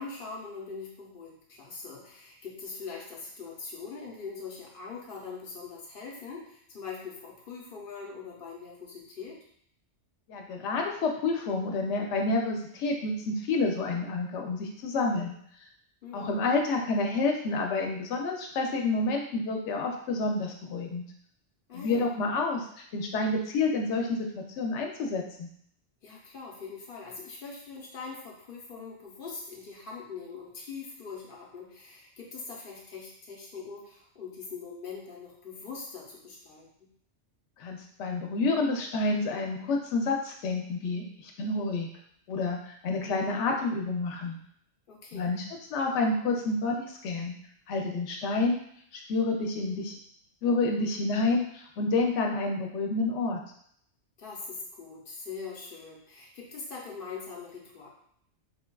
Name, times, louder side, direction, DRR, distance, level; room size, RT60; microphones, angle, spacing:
voice 1, 0.0-9.4 16.0-16.3 21.7-22.1 26.0-36.9 44.9-45.3 54.2-57.9, left 5 dB, 55° left, -2 dB, 0.9 m, -42 dB
voice 2, 10.3-15.4 16.1-21.0 21.7-22.7 22.9-25.5 37.6-41.9 42.3-44.4 45.1-45.4 45.7-47.3 47.7-48.6 48.9-49.9 50.4-53.4, left 3 dB, 90° left, 2 dB, 0.9 m, -29 dB
3.9 x 2.2 x 2.2 m, 0.66 s
omnidirectional pair, 1.2 m